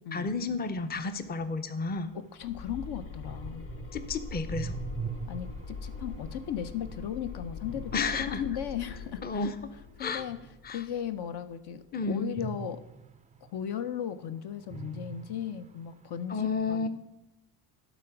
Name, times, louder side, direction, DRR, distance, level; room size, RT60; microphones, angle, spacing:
voice 1, 0.1-2.1 3.9-4.8 7.9-8.4 9.2-9.6 10.0-10.2 10.6-10.8 11.9-12.3 16.3-16.9, left 4 dB, 20° left, 10 dB, 0.6 m, -31 dB
sound 1, 0.8-11.0 12.4-14.3 14.6-16.3, right 7 dB, 20° right, 0.3 m, -44 dB
voice 2, 2.1-3.7 5.3-7.9 8.2-9.5 10.0-10.4 10.7-12.8 13.4-16.9, left 9 dB, 60° left, 10 dB, 0.7 m, -36 dB
sound 2, 2.4-11.3, left 4 dB, 90° left, 1.1 m, -42 dB
11.0 x 4.0 x 5.8 m, 0.92 s
cardioid pair, 85°, 45 cm